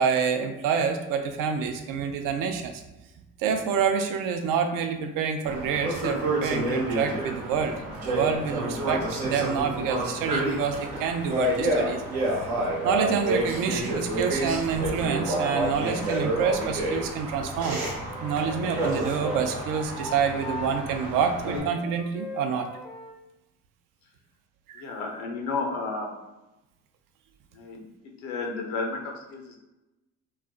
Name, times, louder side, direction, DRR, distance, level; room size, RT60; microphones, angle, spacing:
voice 1, 0.0-2.8 3.4-7.8 8.1-12.0 12.8-17.8 18.2-22.7 24.8-24.9, right 6 dB, 60° right, 6 dB, 0.5 m, -27 dB
sound 1, 5.4-21.6, right 1 dB, 80° right, 0.9 m, -29 dB
Wind instrument woodwind instrument, 17.7-23.2, left 2 dB, ahead, 0.5 m, -41 dB
voice 2, 24.7-26.1 27.5-29.6, left 3 dB, 80° left, 2 dB, 0.7 m, -32 dB
2.4 x 2.1 x 3.6 m, 0.98 s
hypercardioid pair, 55°, 38 cm